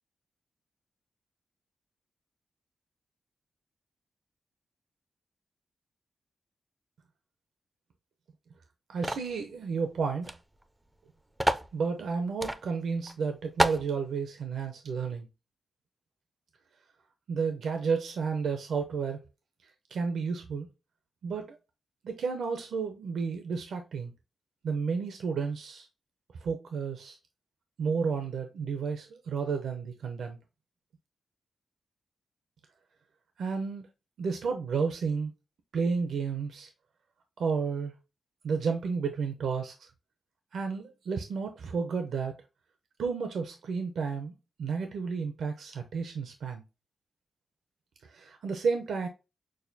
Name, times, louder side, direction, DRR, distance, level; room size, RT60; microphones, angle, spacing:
voice 1, 8.9-10.3 11.7-15.3 17.3-19.2 19.9-20.7 21.2-21.6 22.0-24.1 24.6-25.9 26.4-27.2 27.8-30.4 33.4-33.9 34.2-35.3 35.7-36.7 37.4-37.9 38.4-39.7 40.5-42.3 43.0-44.3 44.6-46.6 48.1-49.1, right 5 dB, 85° right, 0.6 m, -31 dB
sound 1, 9.0-9.3 10.2-10.4 10.6-10.7 11.4-11.7 12.4-12.6 13.1-13.2 13.6-13.9, right 1 dB, 10° right, 0.4 m, -27 dB
6.3 x 2.3 x 2.6 m
wide cardioid pair, 135°, 0 cm